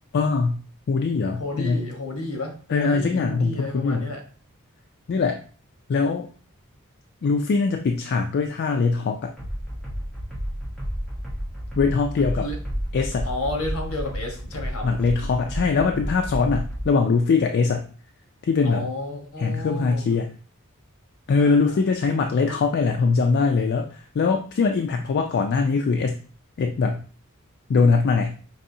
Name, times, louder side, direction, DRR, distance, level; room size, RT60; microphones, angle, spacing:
voice 1, 0.1-0.6 0.9-1.9 2.7-4.1 5.1-5.4 5.9-6.3 7.2-9.3 11.8-12.5 12.9-13.3 14.8-17.9 18.4-18.9 19.4-20.3 21.3-26.2 26.6-27.0 27.7-28.4, left 4 dB, 50° left, 4 dB, 0.3 m, -22 dB
voice 2, 1.4-4.2 12.4-12.6 13.2-14.9 18.6-20.0 21.4-21.8, left 2 dB, 70° left, 2 dB, 1.1 m, -32 dB
sound 1, 9.4-16.9, equal, ahead, 1.0 m, -31 dB
5.3 x 2.7 x 2.6 m, 0.40 s
head